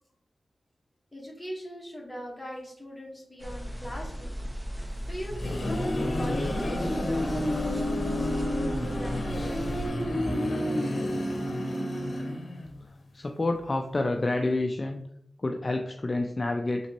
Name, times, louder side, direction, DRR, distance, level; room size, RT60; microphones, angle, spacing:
voice 1, 1.1-4.4 4.7-5.7 6.1-9.6, equal, 15° left, -2 dB, 1.4 m, -41 dB
sound 1, 3.4-9.9, equal, 10° right, 0.7 m, -36 dB
sound 2, 5.1-12.8, left 1 dB, 65° left, 0.8 m, -30 dB
voice 2, 13.1-15.0 15.4-16.9, left 2 dB, 40° left, 3 dB, 0.3 m, -28 dB
4.0 x 3.0 x 3.0 m, 0.71 s
wide cardioid pair, 75°, 0 cm